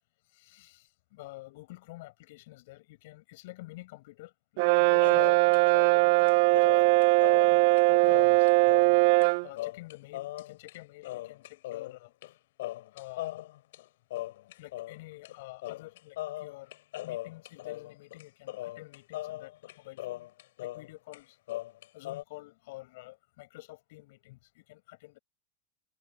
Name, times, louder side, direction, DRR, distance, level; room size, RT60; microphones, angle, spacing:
voice 1, 0.2-8.8 9.2-12.1 12.9-13.4 14.4-16.8 17.0-20.2 20.6-21.4 21.9-25.2, left 20 dB, 60° left, 7.9 m, -49 dB
Brass instrument, 4.6-9.5, right 26 dB, 55° right, 0.4 m, -21 dB
sound 1, 5.0-9.0 9.2-9.3 9.6-10.8 11.0-12.3 12.6-15.0 15.2-15.4 15.6-20.9 21.1-22.2, left 16 dB, 80° left, 4.9 m, -39 dB
supercardioid pair, 160°, 0 cm